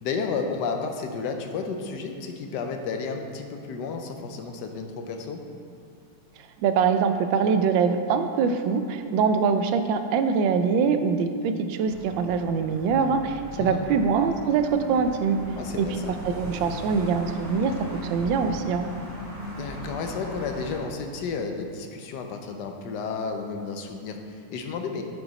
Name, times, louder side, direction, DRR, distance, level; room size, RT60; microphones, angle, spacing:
voice 1, 0.0-5.4 13.6-13.8 15.6-16.2 19.5-25.0, left 5 dB, 70° left, 4 dB, 1.3 m, -32 dB
voice 2, 6.6-15.4 15.8-15.9 16.2-17.7 18.1-18.9, right 6 dB, 90° right, 8 dB, 1.3 m, -23 dB
sound 1, 11.8-20.8, equal, 35° right, 2.2 m, -38 dB
8.0 x 6.9 x 4.1 m, 2.5 s
omnidirectional pair, 2.0 m